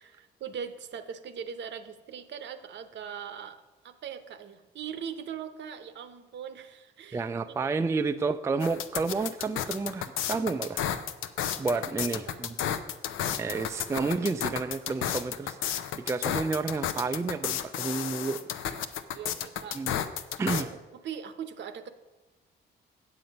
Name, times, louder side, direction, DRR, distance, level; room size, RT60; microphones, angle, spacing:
voice 1, 0.0-7.7 11.7-12.4 18.7-18.9 19.1-19.8 20.6-20.8 21.0-21.9, right 7 dB, 65° right, 10 dB, 0.8 m, -41 dB
voice 2, 7.1-10.8 11.6-12.6 13.3-18.5 19.7-20.0 20.4-20.7, right 4 dB, 15° right, 10 dB, 0.3 m, -30 dB
sound 1, 8.6-20.6, left 10 dB, 85° left, 0.6 m, -32 dB
7.8 x 7.7 x 5.2 m, 1.1 s
cardioid pair, 90°, 20 cm